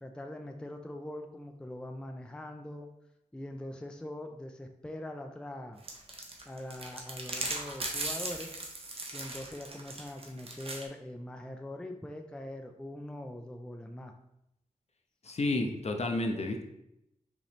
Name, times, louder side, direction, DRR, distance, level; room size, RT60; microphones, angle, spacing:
voice 1, 0.0-2.9 3.3-5.8 6.5-8.5 9.1-14.1, left 1 dB, 5° left, 4 dB, 0.3 m, -42 dB
sound 1, 5.8-10.8, right 2 dB, 45° right, 0.8 m, -38 dB
voice 2, 15.2-16.6, left 2 dB, 55° left, 4 dB, 0.6 m, -31 dB
5.0 x 3.0 x 3.3 m, 0.82 s
wide cardioid pair, 105°, 13 cm